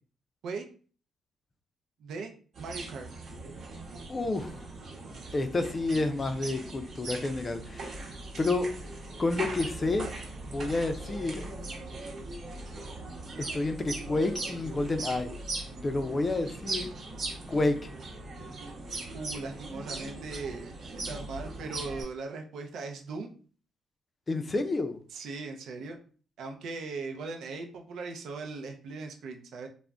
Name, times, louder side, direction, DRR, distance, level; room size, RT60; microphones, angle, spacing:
voice 1, 2.0-3.1 19.1-23.3 25.1-26.0 26.4-29.7, right 4 dB, 75° right, 3 dB, 0.5 m, -39 dB
sound 1, 2.5-22.0, right 2 dB, 55° right, 1.0 m, -40 dB
voice 2, 4.1-4.5 5.3-8.0 8.4-8.7 9.2-10.1 10.4-11.4 13.4-15.3 15.8-16.9 17.5-17.9 24.3-25.0, left 2 dB, 30° left, 8 dB, 0.4 m, -29 dB
2.4 x 2.0 x 3.4 m, 0.41 s
cardioid pair, 90°, 0 cm